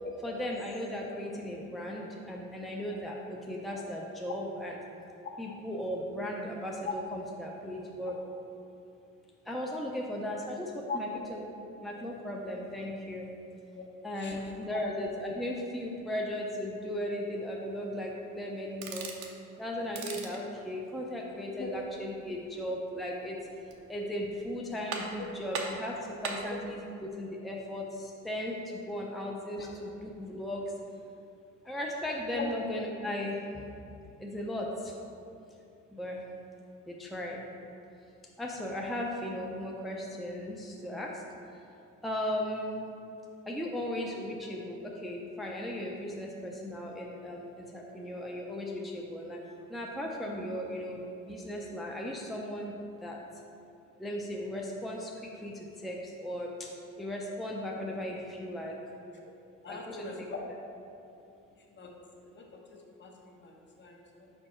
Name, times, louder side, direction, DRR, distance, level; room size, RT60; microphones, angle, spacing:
voice 1, 0.2-4.8 5.4-8.2 9.5-11.4 11.8-13.3 14.0-19.1 19.6-23.4 23.9-26.0 26.2-26.8 27.2-28.6 28.9-29.9 30.2-30.6 31.7-33.4 34.2-34.7 35.9-36.2 36.9-37.4 38.4-41.1 42.0-42.9 43.5-47.5 47.7-49.4 49.7-51.0 51.3-52.7 53.0-53.2 54.0-55.1 55.4-55.5 55.8-56.5 57.0-58.7 59.7-60.1, left 1 dB, ahead, -2 dB, 0.5 m, -36 dB
voice 2, 10.9-11.2 13.7-13.8 14.2-14.4 14.7-14.8 21.6-21.7 29.5-29.7 32.3-32.5 59.6-60.4 61.7-61.9 62.2-64.3, left 4 dB, 40° left, 0 dB, 1.0 m, -40 dB
sound 1, 18.7-19.4 19.8-20.4 23.4-24.0 24.4-24.5 24.9-25.3 25.5-26.5, right 4 dB, 80° right, 0.8 m, -38 dB
5.2 x 4.5 x 4.4 m, 2.7 s
cardioid pair, 90°, 30 cm